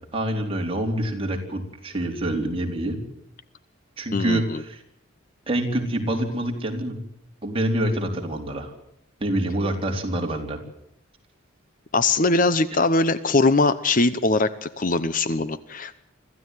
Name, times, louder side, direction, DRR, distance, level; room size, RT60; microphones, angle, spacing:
voice 1, 0.1-3.0 4.0-4.8 5.5-7.0 7.4-8.7 9.2-10.6 12.7-12.8, right 1 dB, 25° right, 2 dB, 3.9 m, -26 dB
voice 2, 4.1-4.6 11.9-16.0, left 3 dB, 40° left, 14 dB, 0.9 m, -21 dB
25.5 x 15.0 x 9.3 m, 0.72 s
head